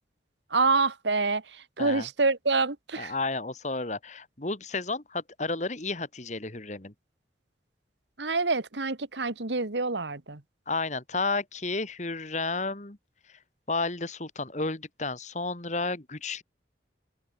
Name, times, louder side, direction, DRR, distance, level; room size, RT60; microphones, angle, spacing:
voice 1, 0.5-1.4 1.8-3.1 8.2-10.4, right 3 dB, 80° right, 1.8 m, -26 dB
voice 2, 3.0-6.9 10.7-13.0 13.3-13.4 13.7-16.4, left 3 dB, 40° left, 2.0 m, -32 dB
head